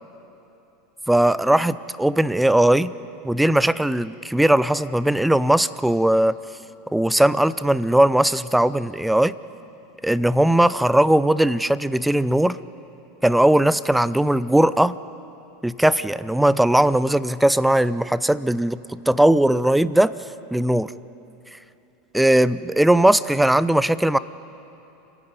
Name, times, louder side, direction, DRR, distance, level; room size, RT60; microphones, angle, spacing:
voice 1, 1.1-2.9 3.2-6.4 6.9-9.3 10.0-12.6 13.2-15.0 15.6-20.1 20.5-20.9 21.5-21.6 22.1-24.2, right 1 dB, 5° right, 16 dB, 0.6 m, -19 dB
28.0 x 11.0 x 9.6 m, 2.9 s
hypercardioid pair, 95°, 0 cm